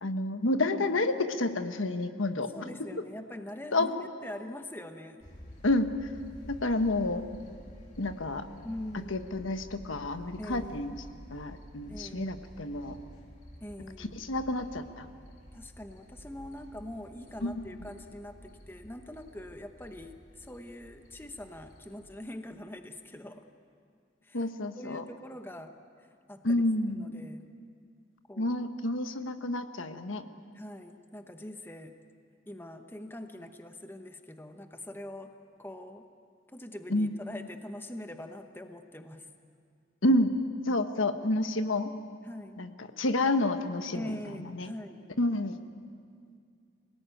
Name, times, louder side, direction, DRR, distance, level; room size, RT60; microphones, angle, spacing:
voice 1, 0.0-2.5 3.7-3.9 5.6-5.9 6.6-7.2 8.0-8.5 9.1-11.0 11.3-13.0 14.0-15.1 17.4-17.6 24.3-25.0 26.4-27.1 28.4-30.2 36.9-37.1 40.0-40.4 40.6-41.9 42.6-42.7 43.0-44.7 45.2-45.6, left 2 dB, 85° left, 8 dB, 1.4 m, -29 dB
voice 2, 2.3-4.0 4.2-5.3 8.6-9.3 10.4-10.8 11.9-12.4 13.6-14.2 15.5-23.4 24.2-24.5 24.7-25.7 26.3-26.6 26.9-27.5 28.3-28.6 30.5-32.0 32.5-36.1 36.5-39.3 42.2-42.6 43.9-45.0, left 1 dB, 10° left, 6 dB, 1.0 m, -43 dB
sound 1, 5.2-22.2, equal, 40° left, 3.2 m, -50 dB
27.0 x 19.0 x 9.2 m, 2.2 s
head